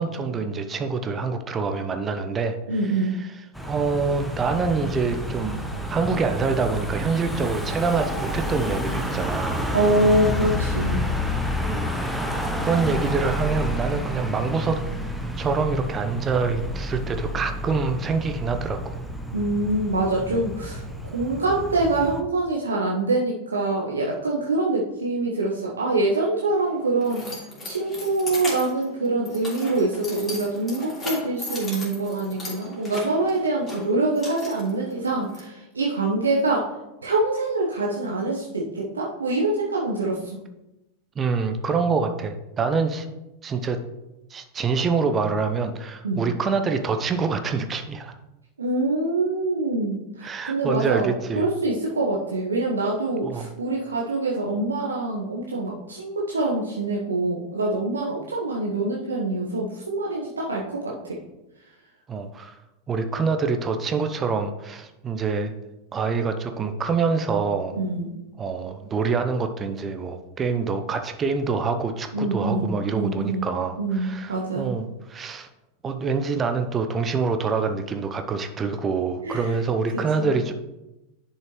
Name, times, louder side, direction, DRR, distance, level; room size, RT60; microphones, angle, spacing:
voice 1, 0.0-2.6 3.2-3.3 3.6-5.6 5.9-9.6 11.7-11.9 12.7-14.8 15.4-19.0 41.2-43.1 43.4-43.8 44.3-48.1 50.2-51.5 53.2-53.5 62.1-62.5 62.9-65.5 65.9-67.8 68.4-75.5 75.8-80.5, right 4 dB, 25° right, 7 dB, 0.7 m, -26 dB
voice 2, 2.7-3.1 9.7-11.0 19.3-20.8 21.1-36.7 37.0-40.4 46.0-46.2 48.6-61.2 67.7-68.1 72.1-73.5 73.8-74.7 79.2-79.5 80.2-80.3, right 2 dB, 75° right, -3 dB, 1.0 m, -25 dB
Car passing by / Engine, 3.5-22.2, equal, ahead, 1.0 m, -29 dB
Keys jangling, 26.3-35.4, left 1 dB, 20° left, 2.8 m, -37 dB
10.5 x 5.6 x 3.1 m, 0.97 s
figure-of-eight pair, 85°, 0 cm